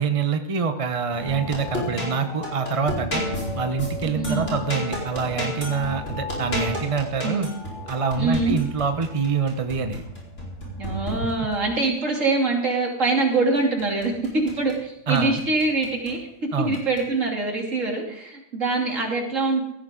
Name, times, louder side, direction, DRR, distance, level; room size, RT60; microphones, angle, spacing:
voice 1, 0.0-3.2 3.5-7.5 7.9-10.0 15.1-15.4 16.5-16.8, right 5 dB, 30° right, 7 dB, 0.8 m, -25 dB
sound 1, 1.1-11.8 13.6-14.8 15.1-16.2 16.7-17.1, left 1 dB, 55° left, 4.6 m, -32 dB
voice 2, 4.1-4.5 7.2-7.5 8.2-8.6 10.8-19.6, right 3 dB, 65° right, 0 dB, 3.3 m, -24 dB
16.5 x 14.0 x 3.8 m, 0.82 s
omnidirectional pair, 1.5 m